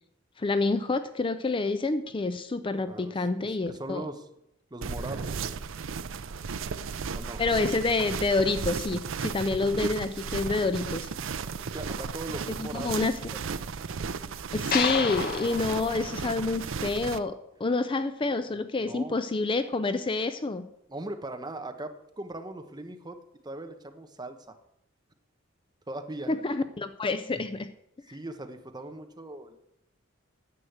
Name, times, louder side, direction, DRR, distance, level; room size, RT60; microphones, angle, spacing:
voice 1, 0.4-4.0 7.4-11.1 12.6-13.1 14.5-20.7 26.3-27.7, left 3 dB, 25° left, 11 dB, 0.5 m, -28 dB
voice 2, 2.7-3.2 3.7-4.3 4.7-5.5 7.1-7.4 11.7-13.0 13.3-13.4 18.3-19.2 20.9-24.5 25.9-26.3 28.1-29.7, right 1 dB, 20° right, 7 dB, 1.0 m, -40 dB
sound 1, 4.8-17.2, right 5 dB, 70° right, 0.5 m, -35 dB
sound 2, 14.7-17.1, left 6 dB, 50° left, 0.9 m, -32 dB
9.8 x 7.7 x 7.9 m, 0.81 s
head